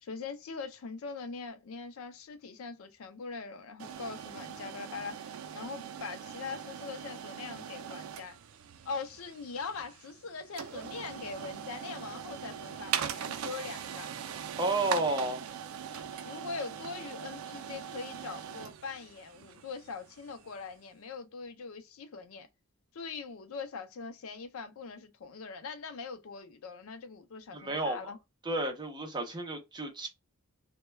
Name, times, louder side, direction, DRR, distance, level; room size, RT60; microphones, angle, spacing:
voice 1, 0.0-5.2 5.5-8.4 8.8-14.2 16.2-22.5 22.9-28.2, left 4 dB, 70° left, 0.4 m, -42 dB
sound 1, 3.8-20.7, right 8 dB, 75° right, 0.4 m, -41 dB
voice 2, 14.6-15.5 27.5-28.0 28.5-30.1, right 2 dB, 20° right, 0.6 m, -31 dB
2.2 x 2.1 x 3.0 m
head